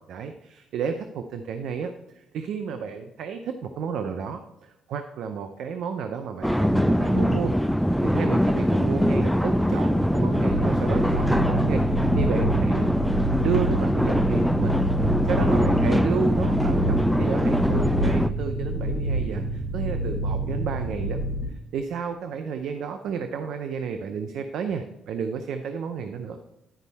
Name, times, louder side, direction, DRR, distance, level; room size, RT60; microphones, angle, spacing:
voice 1, 0.0-7.5 8.0-13.0 13.4-14.7 15.0-21.2 21.5-26.5, right 6 dB, 75° right, 7 dB, 0.6 m, -32 dB
sound 1, 6.4-18.3, equal, ahead, 0.3 m, -22 dB
sound 2, 10.5-21.4, right 1 dB, 55° right, 3.3 m, -28 dB
10.5 x 5.4 x 4.1 m, 0.91 s
cardioid pair, 90°, 0 cm